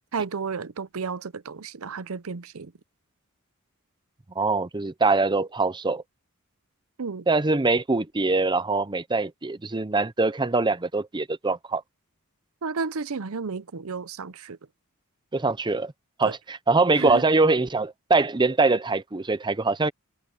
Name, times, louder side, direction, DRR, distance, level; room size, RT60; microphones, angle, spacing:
voice 1, 0.1-2.7 7.0-7.3 12.6-14.6 16.2-16.3 17.0-17.2, right 5 dB, 70° right, 0.7 m, -32 dB
voice 2, 4.4-6.0 7.3-11.8 15.3-15.9 16.2-19.9, right 3 dB, 20° right, 0.7 m, -23 dB
head